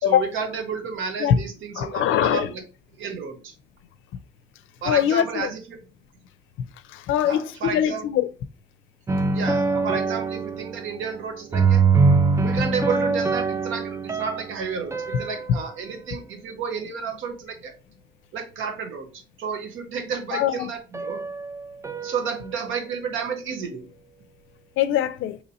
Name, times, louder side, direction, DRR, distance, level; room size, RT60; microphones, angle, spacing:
voice 1, 0.0-2.6 3.0-3.5 4.8-5.8 7.2-8.1 9.3-11.8 12.4-17.7 18.3-21.2 22.0-23.9, right 6 dB, 80° right, 0.9 m, -31 dB
voice 2, 1.8-2.5 4.8-5.5 6.6-8.3 15.5-15.6 20.3-20.7 24.8-25.4, left 10 dB, 80° left, 0.4 m, -22 dB
sound 1, 9.1-11.3 11.5-15.9 20.9-23.0, right 4 dB, 15° right, 0.3 m, -24 dB
2.9 x 2.8 x 3.9 m
cardioid pair, 90°, 20 cm